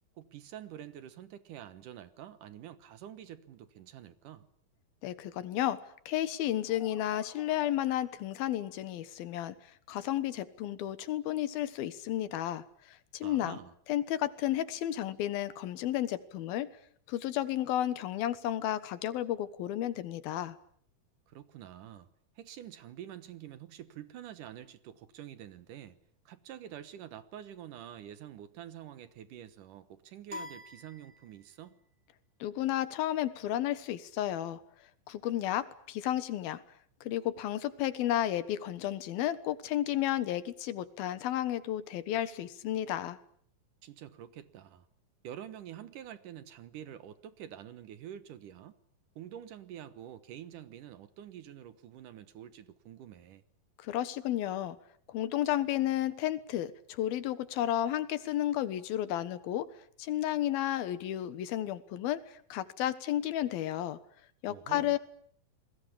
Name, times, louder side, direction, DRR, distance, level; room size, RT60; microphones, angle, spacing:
voice 1, 0.2-4.5 13.2-13.7 21.3-22.1 22.4-26.0 26.3-31.8 43.8-44.9 45.2-48.7 49.2-53.4 64.5-65.0, right 10 dB, 70° right, 13 dB, 2.6 m, -47 dB
voice 2, 5.0-5.8 6.1-9.6 9.9-12.6 13.1-13.6 13.9-16.7 17.1-20.6 32.4-34.6 35.1-36.6 37.0-43.2 53.8-54.8 55.1-59.7 60.0-62.2 62.5-64.0 64.4-65.0, left 12 dB, 90° left, 14 dB, 3.2 m, -32 dB
sound 1, 6.3-8.1, right 1 dB, ahead, 2.7 m, -57 dB
sound 2, 30.3-31.7, left 2 dB, 20° right, 1.8 m, -46 dB
28.0 x 21.0 x 8.5 m, 0.62 s
omnidirectional pair, 4.2 m